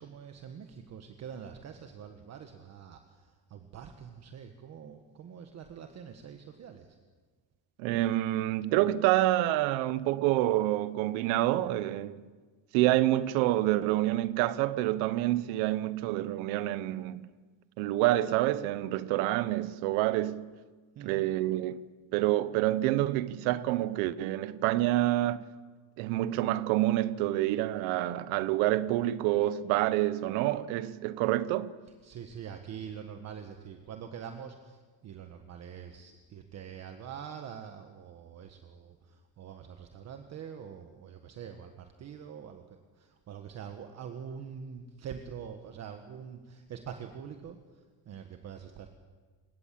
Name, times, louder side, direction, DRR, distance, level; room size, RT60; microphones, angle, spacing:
voice 1, 0.0-7.0 20.9-21.2 32.0-48.9, right 7 dB, 30° right, 1.4 m, -45 dB
voice 2, 7.8-12.2 12.7-17.3 17.8-20.5 21.0-21.8 22.1-25.4 26.0-31.7, right 15 dB, 65° right, 1.2 m, -27 dB
29.0 x 17.5 x 7.6 m
cardioid pair, 165°, 50 cm